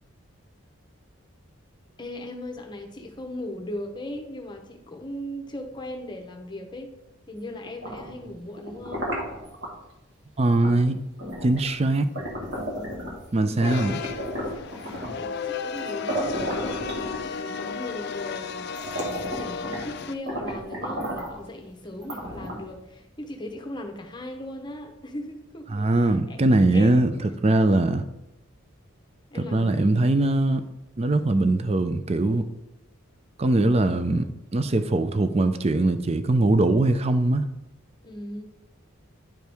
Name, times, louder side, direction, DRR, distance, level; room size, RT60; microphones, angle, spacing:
voice 1, 2.0-6.9 7.3-9.1 13.4-13.9 14.5-16.9 17.2-26.4 26.7-27.3 29.3-30.0 38.0-38.4, left 1 dB, 20° left, 0.8 m, -38 dB
sound 1, 7.6-9.7 10.6-10.8 11.2-13.3 13.6-15.2 15.8-15.9 16.1-17.6 18.2-18.3 18.7-19.9 20.3-21.4 22.0-22.8, equal, 55° right, 1.5 m, -33 dB
voice 2, 10.4-11.0 11.4-12.0 13.3-14.0 25.7-28.0 29.3-30.6 31.0-32.5 33.4-34.3 34.5-37.4, right 2 dB, 30° right, 0.4 m, -21 dB
sound 2, 13.6-20.1, left 5 dB, 50° left, 0.4 m, -34 dB
10.5 x 4.6 x 3.4 m
head